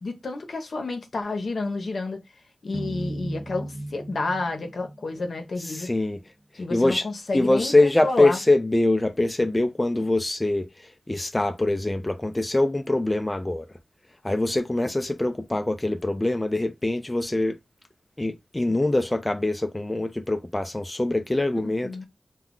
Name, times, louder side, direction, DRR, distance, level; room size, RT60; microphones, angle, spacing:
voice 1, 0.0-2.2 2.6-5.9 6.5-7.7 8.0-8.4 21.6-22.1, left 3 dB, 70° left, 0.8 m, -30 dB
sound 1, 2.7-5.9, right 1 dB, 25° right, 0.5 m, -36 dB
voice 2, 5.6-6.2 6.7-7.1 7.3-13.7 14.2-17.6 18.2-22.1, left 2 dB, 25° left, 0.4 m, -24 dB
2.2 x 2.0 x 3.7 m
cardioid pair, 40°, 0 cm